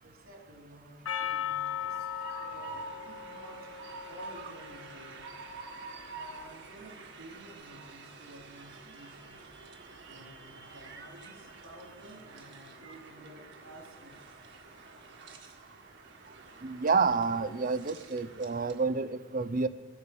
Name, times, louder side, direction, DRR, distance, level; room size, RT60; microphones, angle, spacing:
voice 1, 0.0-5.3 6.1-9.4 10.0-14.2, right 1 dB, 85° right, 0 dB, 3.8 m, -52 dB
Percussion, 1.1-5.5, left 9 dB, 90° left, 0.9 m, -38 dB
Train, 1.1-18.9, right 3 dB, 60° right, 1.7 m, -48 dB
voice 2, 16.6-19.7, right 4 dB, 40° right, 14 dB, 0.6 m, -29 dB
22.0 x 8.7 x 6.2 m, 1.4 s
head